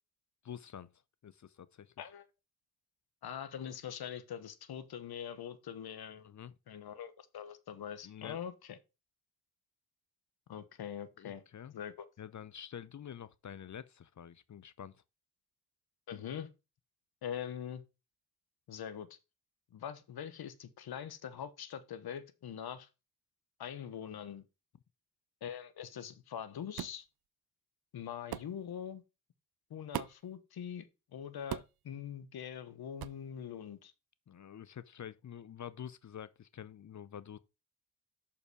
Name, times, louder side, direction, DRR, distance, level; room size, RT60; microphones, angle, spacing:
voice 1, 0.4-0.9 1.2-1.9 6.2-6.5 8.0-8.4 11.2-11.7 12.2-14.9 34.3-37.4, left 9 dB, 50° left, 0.7 m, -47 dB
voice 2, 3.2-6.3 6.7-8.8 10.5-11.4 11.7-12.1 16.1-16.5 17.2-17.8 18.7-19.1 19.7-22.9 23.6-24.4 25.4-27.0 27.9-29.0 29.7-30.9 31.1-33.9, left 8 dB, 75° left, 1.2 m, -43 dB
sound 1, 26.8-27.0 28.3-28.5 29.9-30.3 31.5-31.8 33.0-33.2, right 13 dB, 70° right, 0.6 m, -40 dB
6.6 x 5.6 x 4.9 m
supercardioid pair, 45°, 38 cm